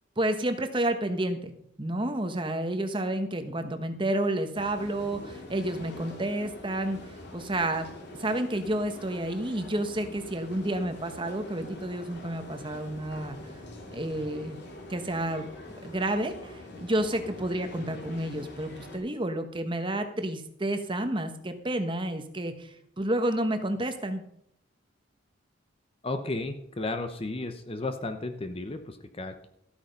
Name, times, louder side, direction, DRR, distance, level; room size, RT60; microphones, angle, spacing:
voice 1, 0.2-1.5 1.8-7.0 7.3-7.9 8.2-13.4 13.9-14.6 14.9-15.5 15.8-24.2, right 1 dB, 25° right, 7 dB, 1.2 m, -30 dB
sound 1, 4.5-19.0, left 1 dB, 60° left, 2.7 m, -44 dB
voice 2, 26.0-29.5, left 2 dB, 30° left, 7 dB, 0.8 m, -34 dB
13.5 x 8.7 x 5.4 m, 0.73 s
head